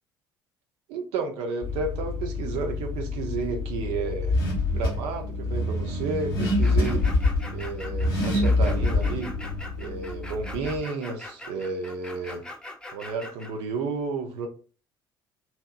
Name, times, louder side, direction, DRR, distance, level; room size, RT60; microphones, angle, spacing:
voice 1, 0.9-4.4 4.7-7.1 7.5-9.3 9.8-12.4 12.9-14.5, right 4 dB, 55° right, 0.4 m, -32 dB
Car / Accelerating revving vroom, 1.6-10.8, left 2 dB, 75° left, 0.7 m, -26 dB
sound 1, 6.4-13.5, left 1 dB, 5° left, 0.4 m, -41 dB
2.7 x 2.0 x 2.2 m
figure-of-eight pair, 55°, 12 cm